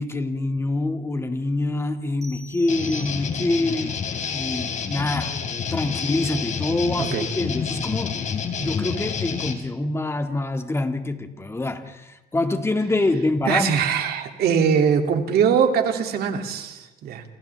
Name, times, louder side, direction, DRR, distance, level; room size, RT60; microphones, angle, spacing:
voice 1, 0.0-4.0 4.3-5.4 5.7-8.2 8.6-13.7, left 2 dB, 15° left, 6 dB, 2.0 m, -25 dB
sound 1, 2.2-3.7, right 1 dB, 40° right, 7.9 m, -44 dB
sound 2, 2.7-9.5, left 6 dB, 45° left, 3.0 m, -29 dB
voice 2, 13.5-17.2, right 7 dB, 70° right, 5 dB, 2.7 m, -22 dB
29.0 x 27.0 x 3.5 m, 1.1 s
cardioid pair, 110°, 17 cm